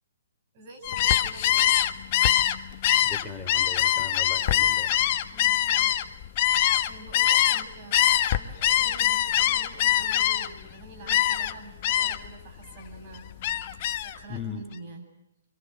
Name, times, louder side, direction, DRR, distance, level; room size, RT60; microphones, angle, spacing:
voice 1, 0.5-1.8 5.3-6.0 6.3-6.5 6.8-13.6 14.0-15.0, right 2 dB, 40° right, 4 dB, 7.9 m, -46 dB
Gull seagull, 0.8-7.6 7.9-10.6 11.1-11.5 11.8-12.3 12.7-14.2, left 12 dB, 40° left, 1.3 m, -23 dB
voice 2, 3.0-4.9 14.3-14.6, left 5 dB, 5° left, -1 dB, 3.5 m, -38 dB
26.5 x 25.0 x 8.1 m, 0.88 s
hypercardioid pair, 135°, 0 cm